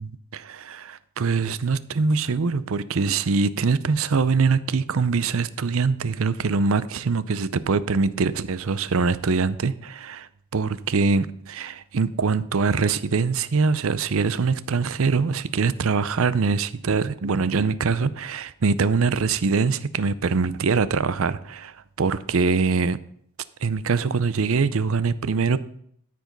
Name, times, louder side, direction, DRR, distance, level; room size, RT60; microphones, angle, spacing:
voice 1, 0.0-23.0 23.6-25.6, right 4 dB, 65° right, 0.5 m, -23 dB
13.0 x 5.1 x 5.3 m
head